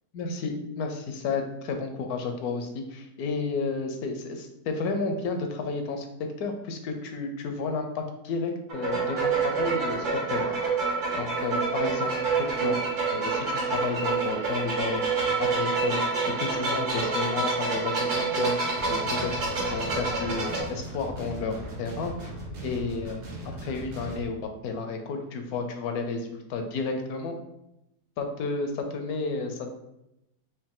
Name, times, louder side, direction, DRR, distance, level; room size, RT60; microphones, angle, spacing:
voice 1, 0.1-10.6 11.2-12.1 12.4-12.8 13.1-15.0 15.4-18.6 18.9-22.3 22.6-23.2 23.4-27.4 28.2-29.7, left 4 dB, 75° left, 5 dB, 1.1 m, -32 dB
sound 1, 8.7-20.6, right 4 dB, 70° right, 1.7 m, -27 dB
sound 2, 18.7-24.3, equal, 90° right, 1.5 m, -38 dB
4.7 x 2.7 x 3.6 m, 0.86 s
omnidirectional pair, 1.7 m